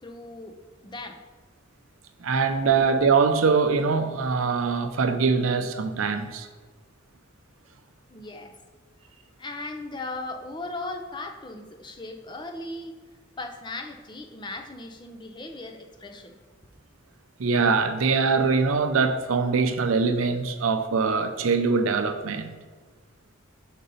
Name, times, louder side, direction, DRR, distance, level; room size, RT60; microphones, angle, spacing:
voice 1, 0.0-0.6 0.8-1.2 8.1-8.5 9.4-13.0 13.4-16.4, left 2 dB, 20° left, 5 dB, 0.5 m, -37 dB
voice 2, 2.2-6.5 17.4-22.5, right 4 dB, 85° right, 8 dB, 0.6 m, -23 dB
5.3 x 3.9 x 5.4 m, 1.4 s
head